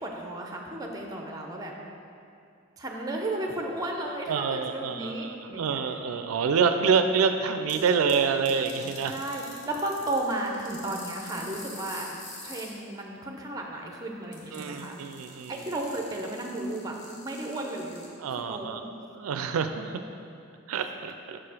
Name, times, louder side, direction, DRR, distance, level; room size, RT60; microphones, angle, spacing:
voice 1, 0.0-1.7 2.8-5.8 9.1-12.1 12.4-15.0 15.5-18.9, right 1 dB, 15° right, 1 dB, 0.6 m, -34 dB
voice 2, 4.3-9.2 14.5-15.6 18.2-18.8 19.2-20.0 20.7-21.4, right 6 dB, 85° right, 8 dB, 0.4 m, -27 dB
sound 1, 7.7-8.2 8.5-12.7 14.3-18.1, left 2 dB, 35° left, 1.0 m, -45 dB
5.9 x 4.8 x 4.8 m, 2.5 s
head